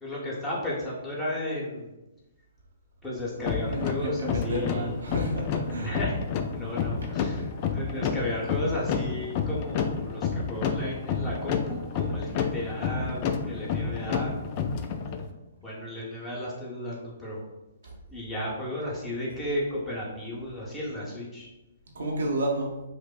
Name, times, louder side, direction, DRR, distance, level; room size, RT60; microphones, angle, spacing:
voice 1, 0.0-1.9 3.0-4.9 5.7-6.2 6.5-7.4 7.7-14.4 15.6-17.4 18.1-21.5, left 1 dB, 15° left, -5 dB, 0.9 m, -34 dB
sound 1, 3.4-15.3, left 6 dB, 35° left, 0.3 m, -30 dB
voice 2, 3.7-6.0 7.4-7.6 17.8-17.9 21.9-22.7, right 1 dB, 65° right, -1 dB, 0.7 m, -31 dB
5.0 x 2.0 x 2.3 m, 1.0 s
figure-of-eight pair, 125°, 0 cm